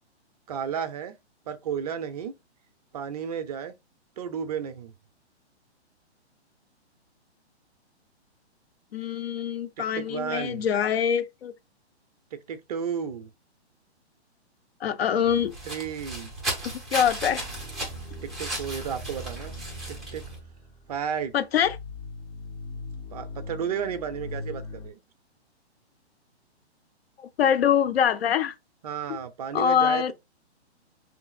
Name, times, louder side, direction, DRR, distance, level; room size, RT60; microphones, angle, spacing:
voice 1, 0.5-1.1 1.5-2.3 2.9-3.7 4.2-4.9 9.9-10.7 12.3-13.3 15.7-16.3 18.2-19.5 19.9-20.2 20.9-21.3 23.1-25.0 28.8-30.1, right 7 dB, 35° right, 0.6 m, -33 dB
voice 2, 8.9-11.5 14.8-15.5 16.6-17.5 21.3-21.8 27.2-28.5 29.1-29.2 29.5-30.1, left 8 dB, 60° left, 0.8 m, -24 dB
sound 1, 15.2-20.4, right 1 dB, ahead, 1.5 m, -35 dB
sound 2, 17.4-24.9, left 2 dB, 35° left, 1.5 m, -41 dB
5.9 x 3.2 x 2.3 m
hypercardioid pair, 150°, 34 cm